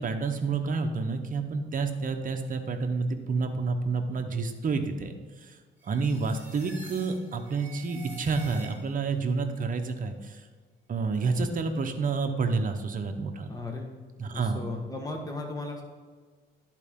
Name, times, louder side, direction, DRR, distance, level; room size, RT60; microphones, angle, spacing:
voice 1, 0.0-5.1 5.4-5.5 5.8-10.4 10.9-13.5 14.2-14.6, right 4 dB, 45° right, 5 dB, 0.9 m, -29 dB
sound 1, 5.8-9.1, right 3 dB, 10° right, 2.2 m, -48 dB
voice 2, 13.5-13.9 14.3-15.8, left 2 dB, 20° left, 1 dB, 1.5 m, -36 dB
11.0 x 4.6 x 3.7 m, 1.5 s
cardioid pair, 90°, 20 cm